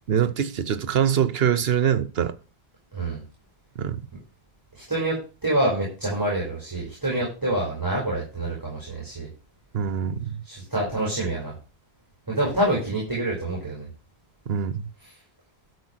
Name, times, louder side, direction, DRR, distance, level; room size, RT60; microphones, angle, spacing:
voice 1, 0.1-2.4 3.8-4.0 9.7-10.4 14.5-14.9, right 8 dB, 75° right, 1.1 m, -24 dB
voice 2, 4.7-9.3 10.4-11.5 12.3-13.9, right 1 dB, 20° right, 5.2 m, -26 dB
12.5 x 4.9 x 6.4 m
omnidirectional pair, 1.0 m